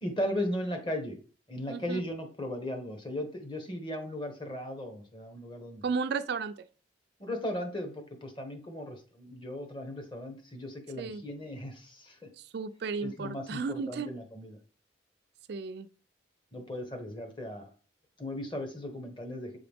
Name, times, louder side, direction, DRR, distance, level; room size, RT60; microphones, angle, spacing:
voice 1, 0.0-1.2 1.5-5.8 7.2-12.3 13.0-14.6 16.5-17.7 18.2-19.6, left 1 dB, 25° left, 1.0 m, -37 dB
voice 2, 1.7-2.0 5.8-6.5 11.0-11.2 12.4-14.1 15.5-15.9, right 5 dB, 55° right, 0.3 m, -34 dB
7.6 x 3.9 x 3.5 m
head